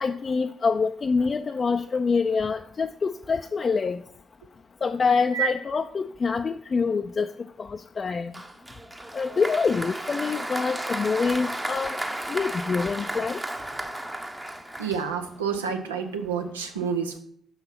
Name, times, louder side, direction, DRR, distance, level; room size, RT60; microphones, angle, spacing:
voice 1, 0.0-4.0 4.8-7.3 7.6-8.3 9.1-12.0 12.3-13.4, left 5 dB, 40° left, 6 dB, 0.4 m, -26 dB
Applause, 8.3-15.4, right 1 dB, 15° right, 0.9 m, -34 dB
voice 2, 14.8-17.2, right 7 dB, 85° right, 5 dB, 0.7 m, -28 dB
5.8 x 5.6 x 5.8 m, 0.65 s
figure-of-eight pair, 40°, 0 cm